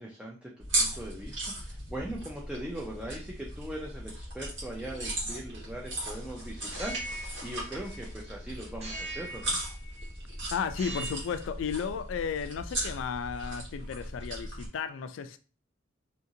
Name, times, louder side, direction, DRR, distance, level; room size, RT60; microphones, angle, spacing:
voice 1, 0.0-9.6, right 1 dB, 5° right, 0.4 m, -40 dB
sound 1, 0.6-14.7, right 1 dB, 75° right, 1.4 m, -37 dB
sound 2, 6.6-8.3 8.8-10.1 10.7-11.4, right 2 dB, 35° right, 0.7 m, -41 dB
voice 2, 10.5-15.4, left 6 dB, 85° left, 0.3 m, -34 dB
2.9 x 2.5 x 2.6 m
head